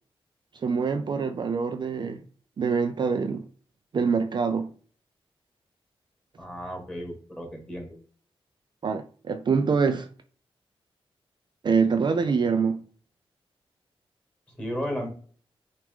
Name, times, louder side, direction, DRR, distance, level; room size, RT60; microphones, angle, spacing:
voice 1, 0.5-2.2 2.6-3.5 3.9-4.7 8.8-10.1 11.6-12.8, right 5 dB, 50° right, 0.4 m, -25 dB
voice 2, 6.4-8.0 14.5-15.1, equal, 10° left, 1.9 m, -34 dB
5.9 x 2.5 x 3.6 m
wide cardioid pair, 100°, 10 cm